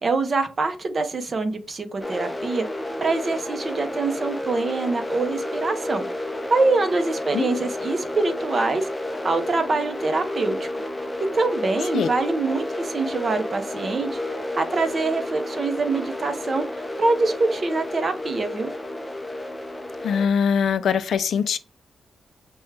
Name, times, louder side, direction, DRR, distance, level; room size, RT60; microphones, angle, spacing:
voice 1, 0.0-2.7 3.0-6.0 6.5-8.9 9.2-10.7 11.2-14.2 14.6-18.7, right 3 dB, 35° right, 0.6 m, -24 dB
sound 1, 2.0-20.3, left 1 dB, 10° left, 0.4 m, -31 dB
voice 2, 20.0-21.6, left 7 dB, 70° left, 0.3 m, -22 dB
6.0 x 2.2 x 3.3 m
cardioid pair, 120°, 0 cm